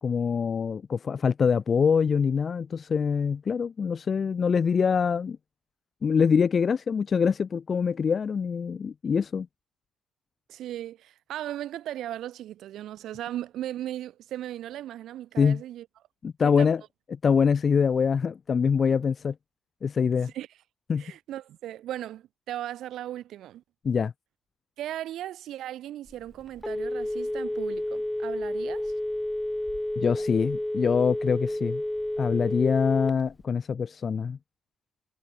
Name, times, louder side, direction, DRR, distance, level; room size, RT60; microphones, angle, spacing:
voice 1, 0.0-5.4 6.0-9.5 15.4-15.6 16.2-16.8 17.1-19.3 19.8-20.3 20.9-21.0 23.8-24.1 30.0-31.8 32.2-34.4, left 6 dB, 45° left, 2.3 m, -24 dB
voice 2, 10.5-15.9 16.4-16.7 20.3-20.5 21.0-23.6 24.8-28.9, right 12 dB, 80° right, 7.0 m, -37 dB
Telephone, 26.1-33.4, left 1 dB, 5° left, 3.9 m, -30 dB
cardioid pair, 90°, 0 cm